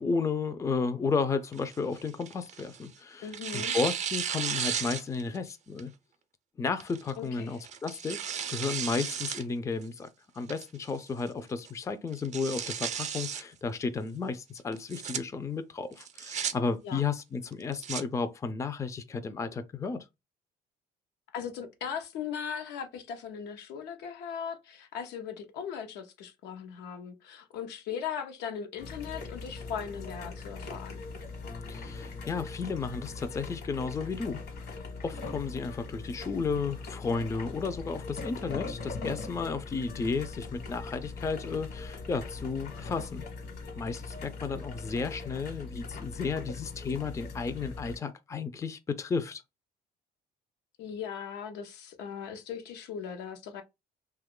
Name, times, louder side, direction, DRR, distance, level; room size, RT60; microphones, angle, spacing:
voice 1, 0.0-5.9 6.6-8.2 8.5-10.1 10.4-20.1 31.7-43.2 43.8-49.4, left 4 dB, 20° left, 0.4 m, -33 dB
Tearing, 1.5-2.9 3.3-5.4 5.8-5.9 6.8-7.1 7.6-9.4 9.8-9.9 10.5-10.9 11.3-11.4 11.7-11.8 12.1-13.4 14.7-15.2 16.0-16.5 17.5-18.0, right 8 dB, 45° right, 0.5 m, -34 dB
voice 2, 3.2-3.8 7.2-7.6 16.8-17.0 21.3-31.0 50.8-53.6, left 7 dB, 90° left, 0.7 m, -38 dB
sound 1, 28.8-48.0, left 3 dB, 65° left, 1.2 m, -41 dB
2.9 x 2.3 x 3.6 m
cardioid pair, 110°, 17 cm